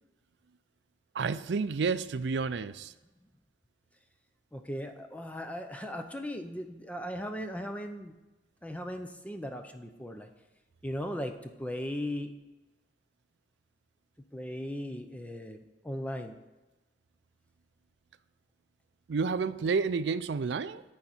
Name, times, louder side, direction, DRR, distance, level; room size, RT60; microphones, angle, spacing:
voice 1, 1.1-2.9 19.1-20.8, right 5 dB, 75° right, 14 dB, 0.4 m, -30 dB
voice 2, 4.5-8.2 8.6-10.3 10.8-12.3 14.3-15.6 15.8-16.3, equal, 10° left, 6 dB, 0.6 m, -37 dB
10.5 x 3.9 x 7.2 m, 1.1 s
head